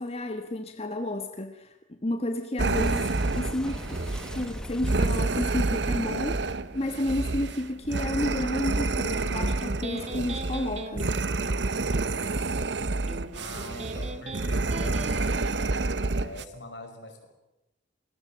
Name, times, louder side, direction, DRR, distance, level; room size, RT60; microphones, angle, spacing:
voice 1, 0.0-1.7 2.0-3.9 4.3-11.1, left 1 dB, 35° left, 6 dB, 1.6 m, -31 dB
sound 1, 2.6-16.4, right 3 dB, 70° right, 0.9 m, -28 dB
Boom, 2.7-8.0, equal, 5° left, 1.3 m, -40 dB
Electric guitar, 9.1-16.1, right 2 dB, 35° right, 2.2 m, -41 dB
voice 2, 13.3-15.3 16.1-17.3, left 2 dB, 75° left, 5 dB, 6.0 m, -43 dB
28.0 x 20.0 x 7.6 m, 0.91 s
head